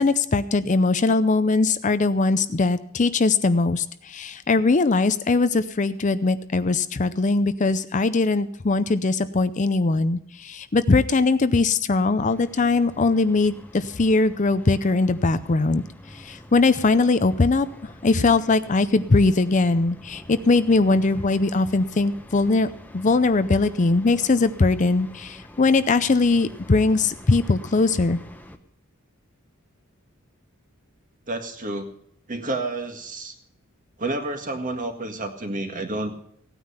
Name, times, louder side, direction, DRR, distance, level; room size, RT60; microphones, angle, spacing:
voice 1, 0.0-22.7 22.9-28.2, left 3 dB, 35° left, 12 dB, 0.5 m, -21 dB
sound 1, 12.2-28.6, left 1 dB, 10° left, 0.9 m, -45 dB
voice 2, 31.3-31.9 32.3-33.3 34.0-36.2, right 2 dB, 40° right, 5 dB, 1.8 m, -30 dB
16.5 x 9.6 x 5.7 m, 0.67 s
head